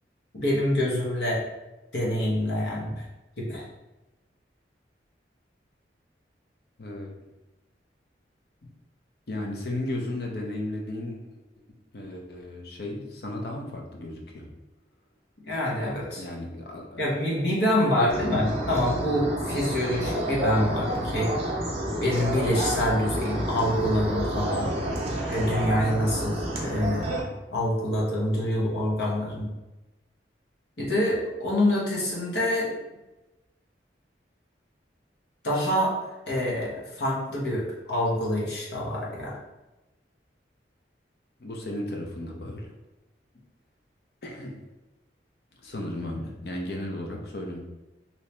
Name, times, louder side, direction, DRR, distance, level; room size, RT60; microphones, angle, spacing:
voice 1, 0.3-1.4 1.9-3.0 3.4-3.6 15.5-16.2 17.0-21.3 22.0-24.7 25.3-27.1 27.5-29.5 30.8-32.7 35.4-36.0 36.3-39.4, left 1 dB, 75° left, -5 dB, 1.0 m, -26 dB
voice 2, 6.8-7.1 9.3-11.4 11.9-14.5 16.2-17.2 18.0-18.5 41.4-42.7 44.2-44.6 45.6-47.6, left 1 dB, 60° left, 0 dB, 0.6 m, -35 dB
sound 1, 18.1-27.2, right 1 dB, 35° right, 0.6 m, -29 dB
2.8 x 2.8 x 3.2 m, 1.0 s
head